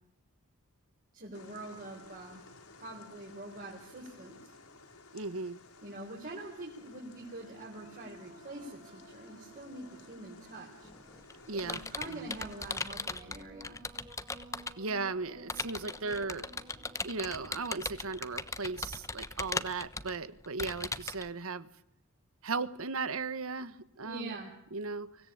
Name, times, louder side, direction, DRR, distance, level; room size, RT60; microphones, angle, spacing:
voice 1, 1.1-2.4 2.8-4.5 5.8-10.9 11.5-13.8 24.0-24.5, right 2 dB, 40° right, -2 dB, 4.4 m, -45 dB
sound 1, 1.3-12.9, left 3 dB, 70° left, 4.3 m, -56 dB
voice 2, 5.1-5.6 11.5-11.8 12.1-12.3 14.8-16.5 17.0-21.7 22.4-24.4 24.7-25.2, right 4 dB, 70° right, 14 dB, 1.3 m, -36 dB
sound 2, 6.5-20.1, right 2 dB, 25° right, 4.2 m, -57 dB
Computer keyboard, 10.8-14.9 15.5-21.3, left 3 dB, 15° left, 1.1 m, -38 dB
24.5 x 17.0 x 8.7 m, 0.80 s
head